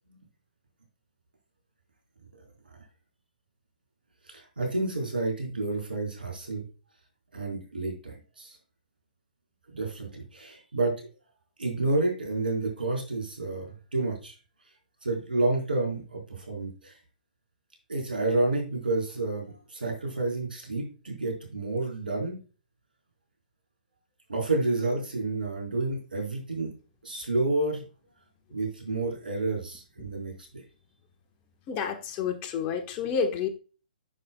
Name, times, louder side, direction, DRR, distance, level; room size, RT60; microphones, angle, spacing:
voice 1, 4.3-6.6 7.3-8.6 9.7-10.9 11.6-14.4 15.0-17.0 17.9-22.4 24.3-26.7 27.0-27.8 28.5-30.6, right 2 dB, 85° right, 0 dB, 4.5 m, -30 dB
voice 2, 31.7-33.5, left 6 dB, 30° left, 5 dB, 1.3 m, -29 dB
10.5 x 6.9 x 2.3 m, 0.34 s
figure-of-eight pair, 130°, 5 cm